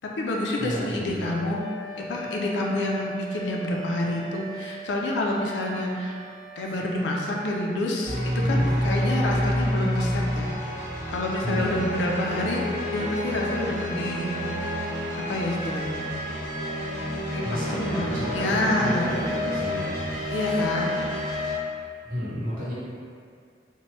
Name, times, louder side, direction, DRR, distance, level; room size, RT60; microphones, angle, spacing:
voice 1, 0.0-1.6 2.0-6.2 6.6-10.5 11.1-12.7 12.9-14.3 15.1-16.0 17.3-17.4 17.7-19.2 20.3-21.0, left 1 dB, 90° left, -1 dB, 0.4 m, -28 dB
voice 2, 0.6-1.3 8.4-8.6 11.4-11.7 17.4-19.9 20.2-20.6 22.0-22.7, equal, 50° right, -10 dB, 1.0 m, -32 dB
Wind instrument woodwind instrument, 1.2-7.7, right 3 dB, 80° right, 0.6 m, -40 dB
sound 1, 8.0-21.5, equal, 20° left, 1.4 m, -28 dB
3.0 x 2.1 x 3.0 m, 2.2 s
head